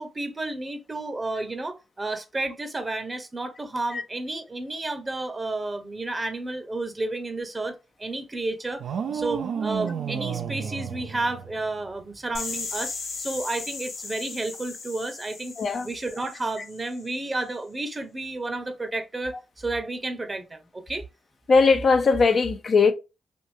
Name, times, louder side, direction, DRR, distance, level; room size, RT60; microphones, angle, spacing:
voice 1, 0.0-8.8 9.1-15.6 15.8-21.0, right 2 dB, 30° right, 0.8 m, -31 dB
sound 1, 8.8-11.9, right 7 dB, 75° right, 0.4 m, -31 dB
sound 2, 12.3-17.1, left 4 dB, 80° left, 1.0 m, -37 dB
voice 2, 21.5-22.9, left 4 dB, 60° left, 0.6 m, -19 dB
3.5 x 2.5 x 2.7 m
hypercardioid pair, 45°, 0 cm